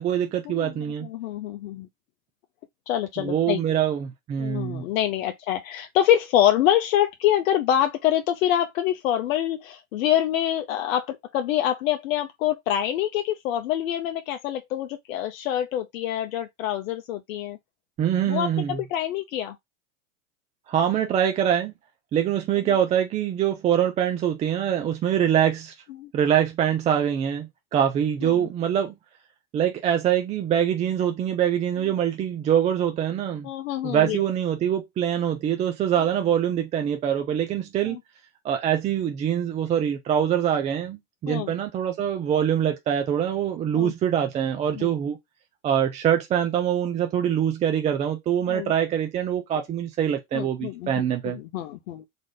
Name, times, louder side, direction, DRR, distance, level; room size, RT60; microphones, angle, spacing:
voice 1, 0.0-1.1 3.2-4.8 18.0-18.8 20.7-21.7 22.1-25.7 26.1-29.0 29.5-33.5 33.8-38.0 38.4-45.2 45.6-51.4, right 9 dB, 20° right, 0.3 m, -24 dB
voice 2, 1.0-1.9 2.9-3.6 4.4-17.6 18.3-19.5 26.0-26.1 33.4-34.2 37.8-38.0 41.3-41.5 43.7-43.9 44.8-44.9 48.5-48.7 50.3-52.1, left 11 dB, 75° left, 0.6 m, -25 dB
3.4 x 2.5 x 3.6 m
hypercardioid pair, 110°, 41 cm